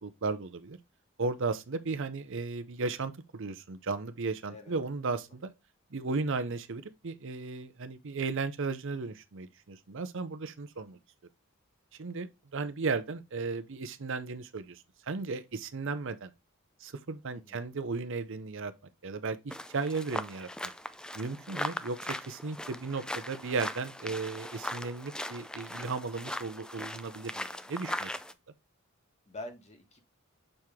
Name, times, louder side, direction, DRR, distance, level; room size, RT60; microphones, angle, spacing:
voice 1, 0.0-0.8 1.2-5.5 5.9-11.0 12.0-16.3 16.8-18.7 19.0-20.5 21.1-22.0 22.3-28.2, right 4 dB, 65° right, 0.7 m, -35 dB
voice 2, 17.3-17.6 29.3-30.0, left 2 dB, 35° left, 1.6 m, -45 dB
sound 1, 19.5-28.3, left 1 dB, 5° left, 0.4 m, -39 dB
6.4 x 4.7 x 3.5 m
head